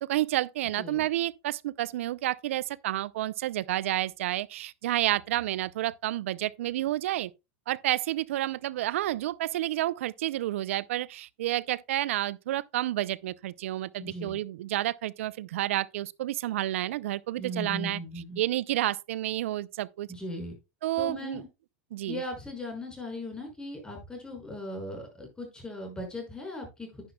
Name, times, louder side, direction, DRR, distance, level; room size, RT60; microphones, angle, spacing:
voice 1, 0.0-7.3 7.7-18.0 18.4-20.1 20.8-21.4 21.9-22.2, right 14 dB, 75° right, 0.5 m, -30 dB
voice 2, 14.0-14.4 17.4-18.4 20.1-20.5 21.0-21.5 22.1-26.9, left 1 dB, 10° left, 5.6 m, -38 dB
10.5 x 10.0 x 2.3 m
hypercardioid pair, 100°, 7 cm